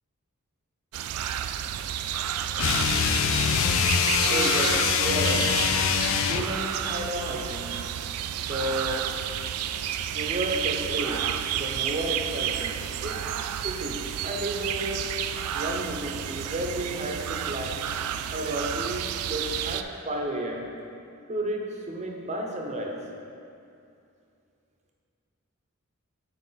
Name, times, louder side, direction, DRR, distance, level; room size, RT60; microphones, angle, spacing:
sound 1, 0.9-19.8, right 10 dB, 85° right, 0.3 m, -31 dB
sound 2, 2.6-6.6, left 7 dB, 65° left, 0.3 m, -24 dB
voice 1, 4.3-5.7 6.3-7.8 8.4-9.1 10.1-12.7 13.0-13.2 13.6-15.1 15.5-17.9 18.3-20.7 21.3-23.0, right 1 dB, 30° right, 0 dB, 0.7 m, -32 dB
7.6 x 4.9 x 4.0 m, 2.5 s
head